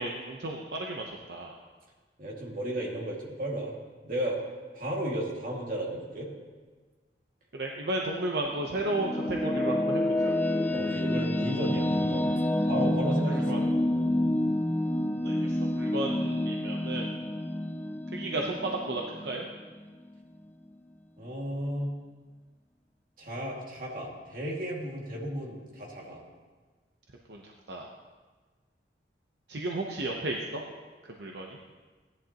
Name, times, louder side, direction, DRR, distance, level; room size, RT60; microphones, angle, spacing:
voice 1, 0.0-1.5 7.5-10.3 13.2-13.6 15.2-17.1 18.1-19.4 27.3-27.9 29.5-30.6 31.0-31.5, right 2 dB, 75° right, 0 dB, 0.9 m, -33 dB
voice 2, 2.2-3.7 4.0-4.4 4.7-6.3 10.7-13.6 13.9-14.1 21.2-21.9 23.2-26.2, right 1 dB, 50° right, -3 dB, 2.2 m, -34 dB
sound 1, 8.5-19.8, left 1 dB, 10° left, 0.5 m, -28 dB
16.0 x 11.0 x 3.0 m, 1.4 s
head